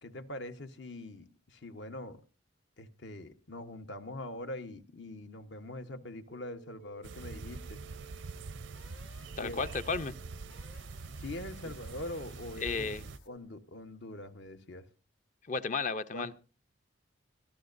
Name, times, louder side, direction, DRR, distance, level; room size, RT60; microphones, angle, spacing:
voice 1, 0.0-2.2 2.8-7.8 9.4-9.7 11.2-12.9 13.3-14.8 16.1-16.3, left 1 dB, 70° left, 8 dB, 1.1 m, -43 dB
sound 1, 6.3-13.4, right 4 dB, 85° left, 1.6 m, -58 dB
sound 2, 7.0-13.2, right 3 dB, 80° right, 0.6 m, -44 dB
voice 2, 9.4-10.1 12.6-13.0 15.5-16.3, left 4 dB, 40° left, 11 dB, 0.6 m, -33 dB
22.5 x 14.5 x 2.6 m, 0.34 s
head